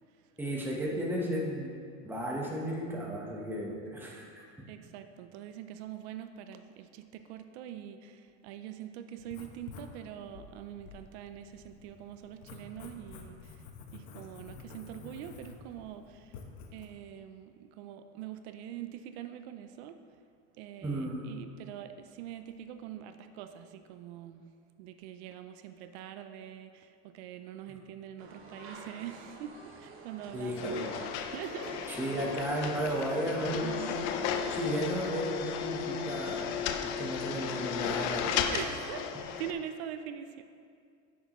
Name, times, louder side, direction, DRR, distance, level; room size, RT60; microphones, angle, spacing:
voice 1, 0.4-1.7 2.0-4.7 20.8-21.3 27.7-27.8 30.3-31.0 31.9-33.9 34.5-36.6 36.8-38.4, right 1 dB, 5° right, -3 dB, 1.1 m, -34 dB
voice 2, 4.7-13.6 13.9-16.4 16.7-20.0 20.6-24.5 24.8-30.8 31.3-31.9 33.6-34.0 38.4-39.1 39.4-40.4, right 10 dB, 85° right, 8 dB, 0.6 m, -44 dB
Writing, 9.2-16.8, left 5 dB, 85° left, 1.0 m, -50 dB
sound 1, 28.2-35.0, right 3 dB, 40° right, 1.0 m, -47 dB
sound 2, 30.6-39.5, left 7 dB, 60° left, 0.6 m, -34 dB
10.0 x 6.4 x 3.1 m, 2.3 s
cardioid pair, 150°, 32 cm